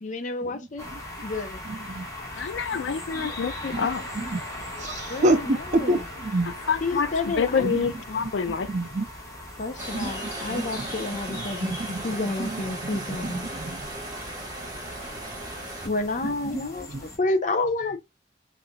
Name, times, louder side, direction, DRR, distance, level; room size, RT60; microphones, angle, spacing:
voice 1, 0.0-0.9 1.2-1.6 5.1-6.0 6.8-7.7 9.6-11.8 12.0-13.5 15.8-18.0, left 2 dB, 45° left, 0.6 m, -30 dB
voice 2, 0.5-1.0 1.7-2.1 2.7-2.8 3.2-3.3 3.7-3.9 4.1-4.4 4.8-6.5 7.6-7.8 8.5-9.1 9.9-10.9 11.3-12.6 13.2-13.8 16.2-17.0, right 2 dB, 40° right, 0.5 m, -29 dB
sound 1, 0.8-17.2, left 1 dB, 20° left, 1.4 m, -40 dB
voice 3, 2.4-4.0 6.7-8.7 10.2-10.3, left 6 dB, 90° left, 0.5 m, -27 dB
sound 2, 9.8-15.9, right 1 dB, 20° right, 1.3 m, -36 dB
5.6 x 2.5 x 2.2 m
head